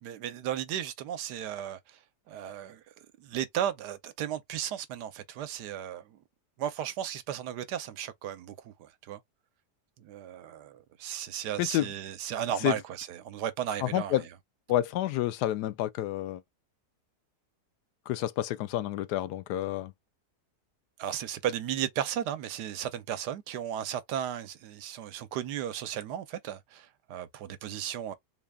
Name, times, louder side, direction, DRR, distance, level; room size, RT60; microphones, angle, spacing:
voice 1, 0.0-2.0 2.3-6.2 6.6-9.2 10.0-14.3 21.0-28.1, right 10 dB, 85° right, 1.3 m, -35 dB
voice 2, 13.8-14.2 14.7-16.4 18.1-19.9, left 14 dB, 80° left, 1.1 m, -29 dB
3.9 x 2.3 x 3.4 m
omnidirectional pair, 1.7 m